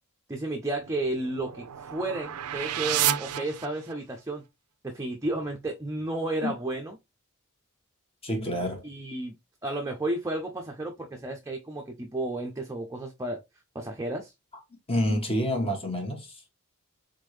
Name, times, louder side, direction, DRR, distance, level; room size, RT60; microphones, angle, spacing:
voice 1, 0.3-4.4 4.8-7.0 8.8-9.3 9.6-13.4 13.7-14.3, right 2 dB, 15° right, 0.6 m, -32 dB
sound 1, 0.8-4.2, right 11 dB, 85° right, 0.5 m, -31 dB
voice 2, 8.2-8.8 14.9-16.3, equal, 25° left, 1.4 m, -28 dB
3.8 x 3.7 x 3.2 m
head